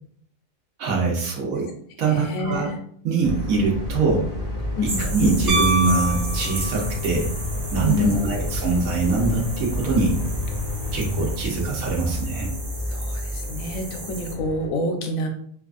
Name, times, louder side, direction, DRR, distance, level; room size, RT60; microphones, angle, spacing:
voice 1, 0.8-1.7 2.0-2.7 3.0-4.2 5.0-7.3 7.7-10.2 10.9-12.5, right 4 dB, 90° right, 0 dB, 1.2 m, -23 dB
voice 2, 2.0-2.8 4.8-5.1 7.9-8.4 12.9-15.3, left 2 dB, 80° left, 3 dB, 1.1 m, -27 dB
sound 1, 3.2-14.7, left 1 dB, 45° left, 0.5 m, -29 dB
sound 2, 4.9-14.3, right 2 dB, 65° right, 1.4 m, -36 dB
Piano, 5.5-7.1 9.4-9.5, equal, 40° right, 0.5 m, -25 dB
3.3 x 2.3 x 2.4 m, 0.63 s
omnidirectional pair, 1.4 m